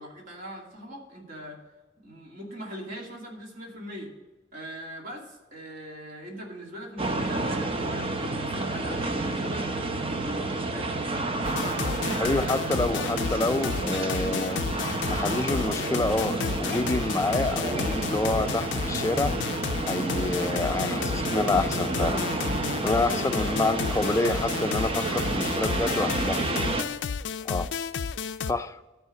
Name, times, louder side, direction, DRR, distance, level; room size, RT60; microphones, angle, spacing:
voice 1, 0.0-1.6 2.0-4.1 4.5-10.3 10.7-11.3 25.9-26.2, equal, 50° right, -1 dB, 2.5 m, -41 dB
sound 1, 7.0-26.8, right 2 dB, 30° right, 0.8 m, -30 dB
sound 2, 11.4-28.5, left 6 dB, 85° left, 0.4 m, -32 dB
voice 2, 12.2-14.6 15.1-19.3 19.8-22.2 22.8-26.4 27.4-27.7 28.4-28.8, left 2 dB, 15° left, 9 dB, 0.4 m, -28 dB
12.5 x 4.8 x 7.5 m, 1.2 s
head